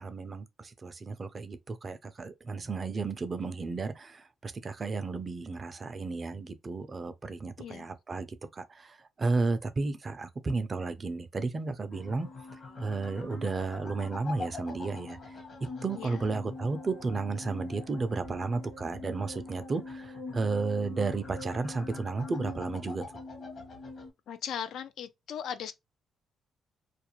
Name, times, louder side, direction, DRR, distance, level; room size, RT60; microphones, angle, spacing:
voice 1, 0.0-8.3 8.5-12.3 12.8-15.4 15.8-23.0, right 3 dB, 35° right, 0.4 m, -33 dB
sound 1, 11.9-24.1, left 3 dB, 50° left, 0.9 m, -43 dB
voice 2, 15.9-16.3 24.3-25.7, left 8 dB, 75° left, 0.3 m, -38 dB
2.4 x 2.1 x 2.9 m
cardioid pair, 90°, 0 cm